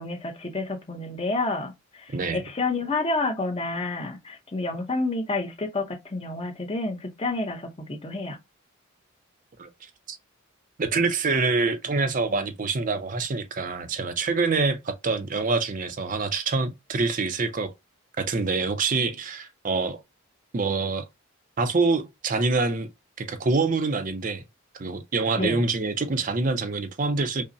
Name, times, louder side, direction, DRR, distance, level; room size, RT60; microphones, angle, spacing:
voice 1, 0.0-8.4 25.4-25.6, left 2 dB, 25° left, 0.7 m, -29 dB
voice 2, 2.1-2.4 9.6-9.7 10.1-10.2 10.8-17.7 18.2-20.0 20.5-21.0 21.6-22.9 23.2-24.4 24.7-27.4, right 3 dB, 35° right, 0.5 m, -26 dB
5.3 x 2.1 x 2.6 m
head